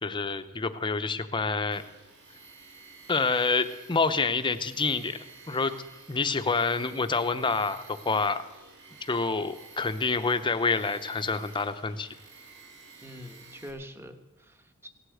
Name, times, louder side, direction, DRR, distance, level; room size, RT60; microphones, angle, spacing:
voice 1, 0.0-1.8 3.1-5.2 5.5-5.8 6.1-8.4 9.0-12.1, left 4 dB, 20° left, 10 dB, 0.7 m, -27 dB
Tools, 1.7-13.7, right 4 dB, 55° right, 2.3 m, -51 dB
voice 2, 13.0-14.9, equal, 10° right, 7 dB, 1.1 m, -45 dB
17.0 x 8.2 x 7.9 m, 1.1 s
head